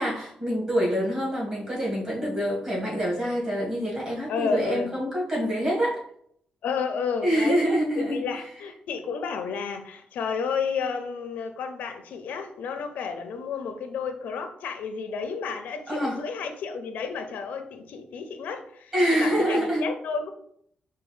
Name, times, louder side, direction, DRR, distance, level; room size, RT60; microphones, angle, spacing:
voice 1, 0.0-6.0 7.2-8.2 15.9-16.2 18.9-19.9, equal, 30° right, -5 dB, 1.6 m, -26 dB
voice 2, 4.3-4.9 6.6-7.6 8.0-20.3, left 5 dB, 85° left, 7 dB, 0.5 m, -31 dB
4.7 x 2.3 x 3.1 m, 0.67 s
wide cardioid pair, 155°, 3 cm